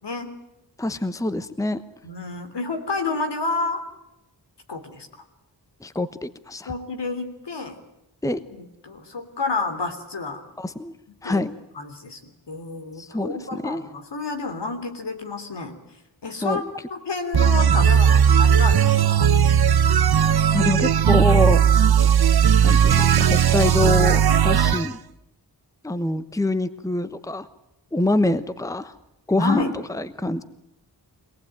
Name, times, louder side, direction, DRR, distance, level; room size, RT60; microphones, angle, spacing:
voice 1, 0.0-0.3 2.0-3.8 4.7-5.1 6.6-7.8 8.5-10.4 11.2-11.4 11.7-15.8 16.2-16.6 16.9-19.3 29.4-29.7, left 3 dB, 70° left, 7 dB, 3.4 m, -30 dB
voice 2, 0.8-1.8 5.8-6.7 8.2-8.4 10.6-10.9 11.2-11.5 13.0-13.8 16.4-16.7 20.5-21.6 22.6-25.0 25.8-27.5 27.9-28.9 29.3-30.4, left 2 dB, 10° left, 13 dB, 1.0 m, -25 dB
sound 1, 17.3-24.9, right 8 dB, 60° right, 0.9 m, -17 dB
25.0 x 18.5 x 9.1 m, 0.88 s
wide cardioid pair, 85°, 43 cm